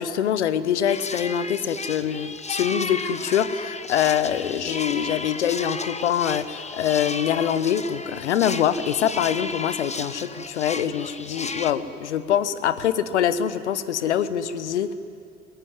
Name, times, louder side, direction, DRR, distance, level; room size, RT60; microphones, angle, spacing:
voice 1, 0.0-14.9, left 9 dB, 85° left, 14 dB, 1.0 m, -24 dB
sound 1, 0.9-11.7, left 3 dB, 20° left, 1.5 m, -34 dB
27.5 x 21.5 x 9.6 m, 2.7 s
hypercardioid pair, 55°, 34 cm